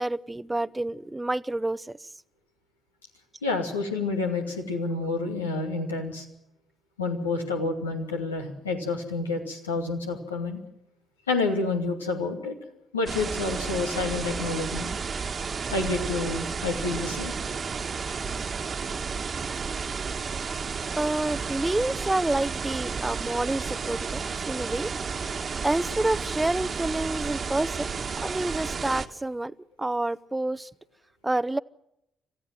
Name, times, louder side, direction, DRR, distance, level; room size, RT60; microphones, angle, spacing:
voice 1, 0.0-2.1 20.9-25.0 25.6-27.9 28.2-30.7 31.2-31.6, right 2 dB, 15° right, 0.8 m, -28 dB
voice 2, 3.4-6.2 7.0-10.6 11.3-12.6 12.9-14.9 15.7-17.4, left 3 dB, 90° left, 2.5 m, -29 dB
sound 1, 13.1-29.1, right 5 dB, 45° right, 1.5 m, -32 dB
26.5 x 16.0 x 7.7 m
figure-of-eight pair, 40°, 0 cm